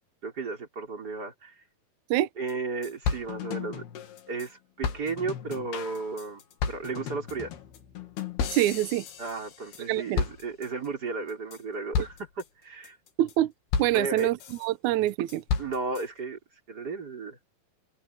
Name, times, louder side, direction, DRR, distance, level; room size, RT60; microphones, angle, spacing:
voice 1, 0.2-1.5 2.4-3.8 4.3-6.4 6.7-7.5 9.2-13.0 13.9-14.3 15.6-16.4 16.7-17.4, right 4 dB, 25° right, 4.4 m, -34 dB
sound 1, 2.2-2.3 2.5-2.6 2.8-4.5 4.8-9.9 10.2-10.9 11.3-11.6 11.9-12.4 12.8-13.3 13.7-14.7 15.1-16.0, left 6 dB, 85° left, 4.2 m, -33 dB
voice 2, 8.5-9.0 9.9-10.2 13.2-13.5 13.8-15.4, right 14 dB, 75° right, 1.8 m, -25 dB
open air
omnidirectional pair, 4.4 m